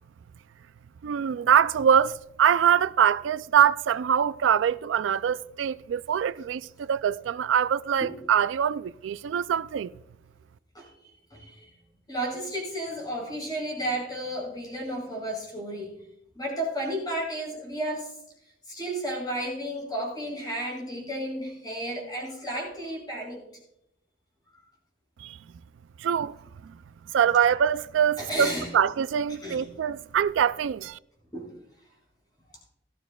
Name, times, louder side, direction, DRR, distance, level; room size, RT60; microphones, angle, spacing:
voice 1, 1.0-9.9 25.2-25.4 26.0-26.4 27.1-31.0, right 8 dB, 75° right, 0.3 m, -24 dB
voice 2, 10.7-11.7 12.1-15.9 16.3-18.1 18.7-23.4 28.2-28.7 29.3-29.7 31.3-31.5, right 1 dB, 20° left, 4.9 m, -33 dB
17.5 x 13.5 x 2.3 m
head